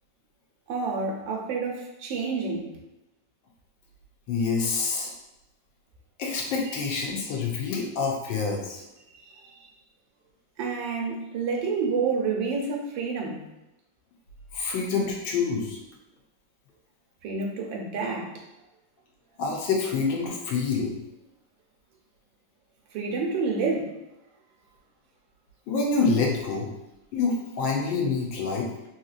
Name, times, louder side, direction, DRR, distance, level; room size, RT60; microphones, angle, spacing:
voice 1, 0.7-2.7 6.7-6.8 10.6-13.5 17.2-18.3 22.9-23.9, right 4 dB, 90° right, 0 dB, 1.4 m, -28 dB
voice 2, 4.3-5.1 6.2-8.8 14.5-15.8 19.4-21.0 25.7-26.7 27.1-28.7, left 4 dB, 85° left, -1 dB, 1.4 m, -27 dB
3.6 x 2.8 x 2.4 m, 0.92 s
omnidirectional pair, 2.0 m